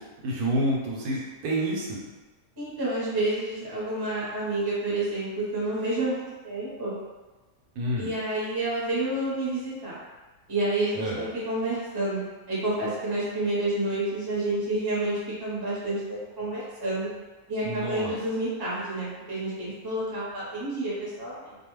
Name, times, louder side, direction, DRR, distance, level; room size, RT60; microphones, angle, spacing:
voice 1, 0.2-2.0 7.8-8.1 10.9-11.2 17.6-18.1, right 1 dB, 80° right, -3 dB, 1.1 m, -28 dB
voice 2, 2.6-7.0 8.0-10.0 10.5-12.2 12.5-17.1 17.5-21.6, right 2 dB, 20° right, -8 dB, 0.8 m, -29 dB
2.6 x 2.3 x 3.0 m, 1.2 s
omnidirectional pair, 1.6 m